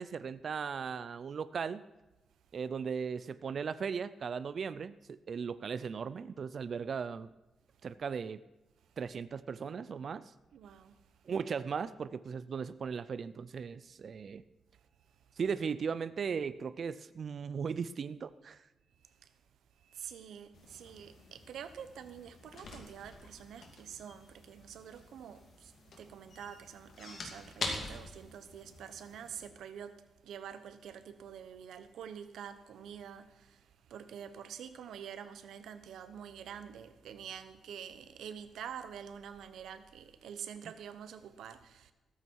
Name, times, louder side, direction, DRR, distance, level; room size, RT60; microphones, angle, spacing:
voice 1, 0.0-1.8 2.5-7.3 7.8-8.4 9.0-10.3 11.3-14.4 15.4-18.6, right 6 dB, 45° right, 0.4 m, -37 dB
voice 2, 10.5-11.0 15.1-15.2 19.0-19.3 19.8-30.0 30.2-41.9, right 8 dB, 90° right, 1.1 m, -47 dB
sound 1, 20.5-29.5, left 3 dB, 55° left, 2.9 m, -46 dB
15.5 x 14.0 x 4.7 m
wide cardioid pair, 145°, 0 cm